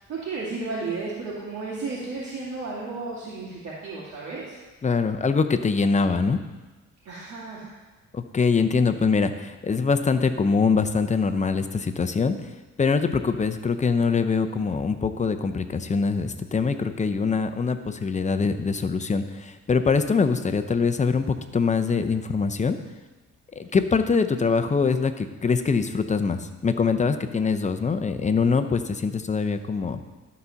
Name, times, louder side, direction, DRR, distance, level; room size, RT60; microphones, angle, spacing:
voice 1, 0.1-4.6 7.0-7.7 23.7-23.9, right 3 dB, 65° right, -8 dB, 2.3 m, -33 dB
voice 2, 4.8-6.4 8.1-12.4 12.8-22.8 23.6-30.0, left 5 dB, 25° left, 9 dB, 0.6 m, -23 dB
12.0 x 4.1 x 5.8 m, 1.2 s
cardioid pair, 90°, 30 cm